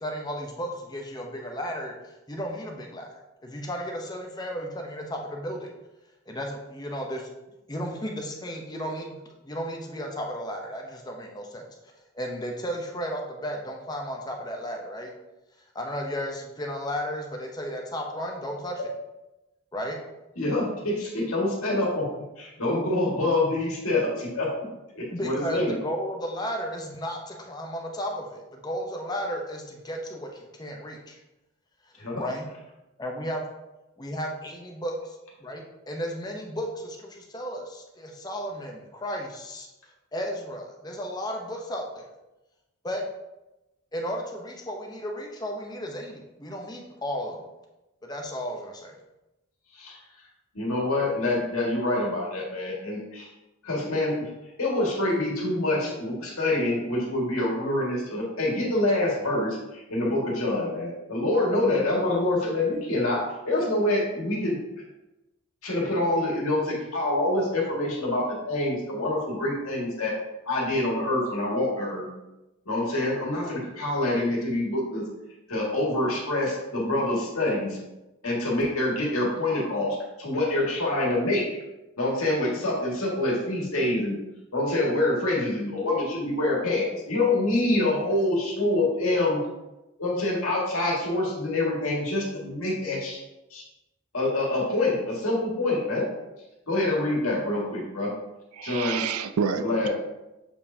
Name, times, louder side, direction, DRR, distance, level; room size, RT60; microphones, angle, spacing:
voice 1, 0.0-3.1 3.4-5.7 6.3-7.3 7.7-9.2 9.4-15.1 15.7-18.8 19.7-20.0 25.1-31.2 32.2-32.5 33.0-33.4 34.0-39.7 40.1-42.1 42.8-43.0 43.9-47.4 48.0-48.9, equal, 20° left, 1 dB, 0.6 m, -34 dB
voice 2, 20.4-22.1 22.4-24.7 25.0-25.8 32.0-32.2 49.7-50.0 50.5-53.3 53.6-54.3 54.6-64.6 65.6-70.1 70.4-72.1 72.7-75.0 75.5-77.8 78.2-81.5 82.0-84.2 84.5-89.4 90.0-93.2 93.5-93.6 94.1-96.1 96.7-98.1 98.6-99.0 99.6-99.9, left 2 dB, 80° left, -3 dB, 1.9 m, -26 dB
voice 3, 98.5-99.9, right 6 dB, 85° right, 10 dB, 0.3 m, -29 dB
7.4 x 4.6 x 2.7 m, 0.99 s
head